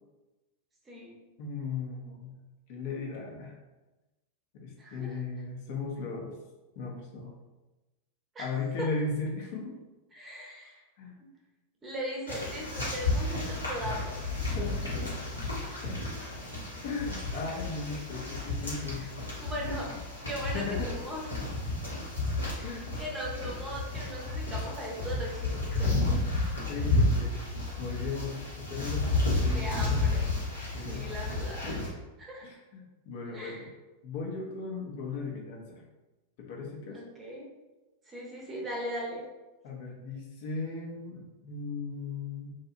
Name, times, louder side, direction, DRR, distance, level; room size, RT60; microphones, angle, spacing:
voice 1, 0.9-1.2 4.8-5.2 8.3-8.5 8.8-8.9 10.1-10.8 11.8-14.2 15.7-16.0 18.9-19.1 19.4-21.2 22.5-26.0 29.5-30.3 30.8-31.8 32.2-32.4 33.3-33.6 36.9-37.5 38.1-39.2, equal, 20° right, -2 dB, 0.7 m, -39 dB
voice 2, 1.4-2.3 2.7-3.6 4.5-6.4 6.8-7.3 8.4-9.8 11.0-11.2 14.5-15.1 15.8-16.1 16.8-19.1 20.5-21.0 22.6-22.9 25.7-26.2 26.7-30.0 30.7-31.1 31.6-31.8 32.4-33.7 34.0-35.8 36.4-37.0 39.6-42.5, left 4 dB, 50° left, -1 dB, 0.6 m, -37 dB
sound 1, 12.3-31.9, left 2 dB, 80° left, 0.9 m, -32 dB
2.7 x 2.3 x 2.6 m, 1.1 s
figure-of-eight pair, 90°, 0 cm